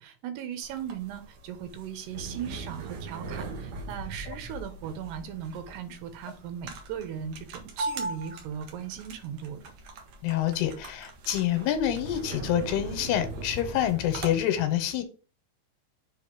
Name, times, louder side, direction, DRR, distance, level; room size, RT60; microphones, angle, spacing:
voice 1, 0.0-9.7, right 9 dB, 90° right, 3.2 m, -38 dB
sound 1, 0.6-14.4, right 3 dB, 60° right, 2.1 m, -40 dB
voice 2, 10.2-15.0, left 11 dB, 80° left, 2.8 m, -27 dB
7.1 x 3.8 x 4.7 m
omnidirectional pair, 4.6 m